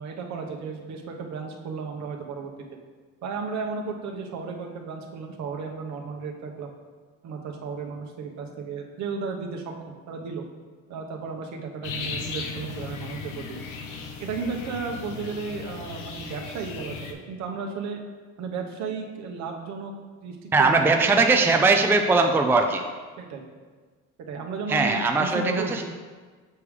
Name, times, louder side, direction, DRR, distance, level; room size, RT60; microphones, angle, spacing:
voice 1, 0.0-2.5 3.2-6.7 7.2-10.4 10.9-13.6 14.2-18.0 18.4-19.9 20.2-20.9 23.2-23.4 24.3-25.8, right 4 dB, 65° right, 3 dB, 1.0 m, -34 dB
sound 1, 11.8-17.1, left 5 dB, 85° left, 0.8 m, -36 dB
voice 2, 20.5-22.8 24.7-25.8, right 3 dB, 5° right, 4 dB, 0.4 m, -20 dB
6.8 x 3.5 x 4.9 m, 1.4 s
cardioid pair, 105°, 30 cm